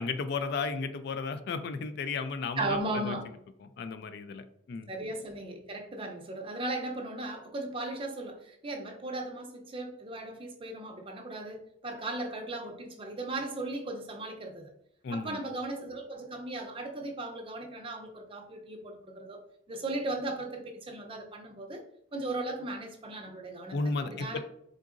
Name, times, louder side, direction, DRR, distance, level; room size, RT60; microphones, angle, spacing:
voice 1, 0.0-2.8 3.0-3.1 3.8-4.9 15.0-15.4 23.7-24.4, left 4 dB, 60° left, 11 dB, 0.3 m, -34 dB
voice 2, 2.6-3.3 4.9-14.7 15.1-19.4 19.7-21.9 22.1-24.4, right 2 dB, 30° right, 2 dB, 0.6 m, -37 dB
3.8 x 3.6 x 2.5 m, 0.73 s
head